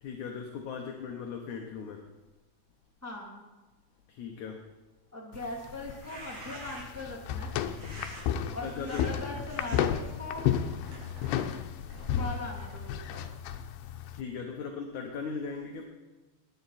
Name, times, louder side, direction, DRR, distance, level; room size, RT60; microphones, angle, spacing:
voice 1, 0.0-2.1 4.1-4.7 8.6-9.2 14.1-15.8, left 5 dB, 65° left, 2 dB, 2.1 m, -38 dB
voice 2, 3.0-3.4 5.1-7.5 8.5-10.5 12.1-13.2, left 2 dB, 5° right, -3 dB, 2.1 m, -40 dB
sound 1, 5.3-14.2, left 9 dB, 85° left, 2.8 m, -33 dB
sound 2, 5.9-7.1 7.8-8.2 8.8-9.1 9.5-9.8 10.4-13.0, right 1 dB, 55° right, 4.6 m, -47 dB
20.5 x 10.5 x 4.2 m, 1.2 s
omnidirectional pair, 4.6 m